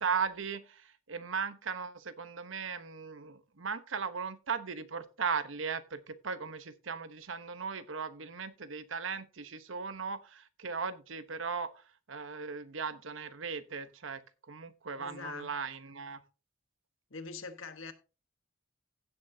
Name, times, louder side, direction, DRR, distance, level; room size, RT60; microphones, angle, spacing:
voice 1, 0.0-11.7 12.1-14.2 14.5-16.2, right 5 dB, 75° right, 1.0 m, -37 dB
voice 2, 15.0-15.5 17.1-17.9, left 4 dB, 85° left, 1.3 m, -43 dB
16.0 x 7.4 x 2.7 m
head